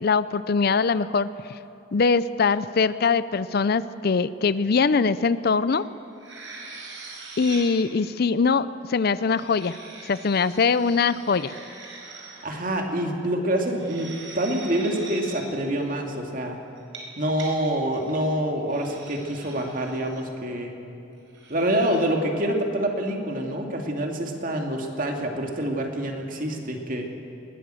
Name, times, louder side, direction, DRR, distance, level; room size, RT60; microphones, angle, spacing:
voice 1, 0.0-1.3 1.9-5.8 7.4-9.8 10.1-11.6, left 5 dB, 55° left, 16 dB, 0.5 m, -22 dB
sound 1, 5.7-5.8 6.1-7.8 9.1-12.4 13.6-15.4 16.8-17.5 17.9-18.2 18.7-20.2 21.3-22.0, right 3 dB, 75° right, 5.0 m, -42 dB
voice 2, 12.4-16.6 17.2-20.7 21.5-27.1, right 1 dB, 45° right, 2 dB, 2.5 m, -26 dB
21.0 x 17.0 x 7.8 m, 2.8 s
head